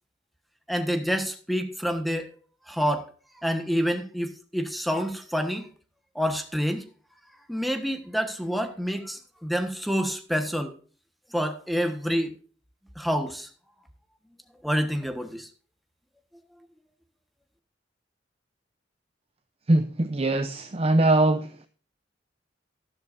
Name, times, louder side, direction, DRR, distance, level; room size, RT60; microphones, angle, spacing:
voice 1, 0.7-2.3 2.7-3.1 3.4-5.6 6.1-6.8 7.5-10.7 11.3-12.3 13.0-13.5 14.6-15.5, equal, ahead, 7 dB, 1.3 m, -27 dB
voice 2, 19.7-21.6, right 2 dB, 35° right, 9 dB, 0.7 m, -22 dB
12.5 x 12.0 x 2.6 m, 0.40 s
head